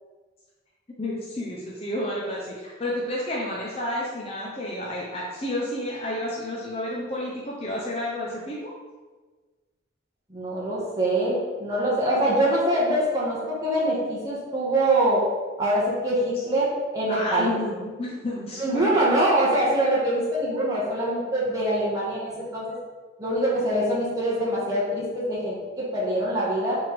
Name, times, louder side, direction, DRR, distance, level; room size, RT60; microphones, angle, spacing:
voice 1, 1.0-8.7 17.0-19.0 19.6-19.7, left 1 dB, 30° left, -5 dB, 0.8 m, -30 dB
voice 2, 10.3-15.2 15.6-17.6 18.6-22.7 23.2-26.7, right 1 dB, 20° right, -7 dB, 1.8 m, -24 dB
5.7 x 3.7 x 5.2 m, 1.4 s
head